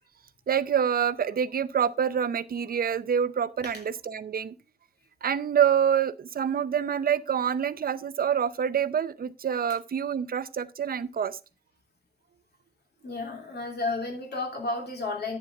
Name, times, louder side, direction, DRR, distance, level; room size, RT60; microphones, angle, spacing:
voice 1, 0.5-4.5 5.2-11.4, right 8 dB, 60° right, 0.7 m, -26 dB
voice 2, 13.0-15.4, left 3 dB, 70° left, 2.9 m, -32 dB
10.5 x 8.7 x 3.5 m
wide cardioid pair, 170°, 17 cm